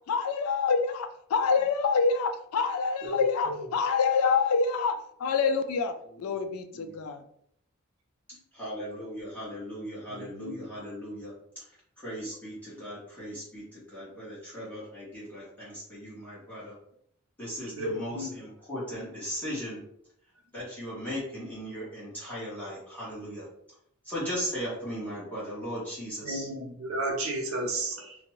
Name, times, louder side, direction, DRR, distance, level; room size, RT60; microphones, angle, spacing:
voice 1, 0.1-7.2, left 5 dB, 90° left, 8 dB, 0.3 m, -26 dB
voice 2, 3.0-3.6 10.1-10.6 17.7-18.3 26.2-28.2, right 1 dB, 80° right, 1 dB, 0.7 m, -33 dB
voice 3, 8.5-11.3 12.0-16.7 17.4-19.8 20.5-23.4 24.0-26.5, equal, 10° left, -9 dB, 1.0 m, -37 dB
2.6 x 2.2 x 3.0 m, 0.70 s
head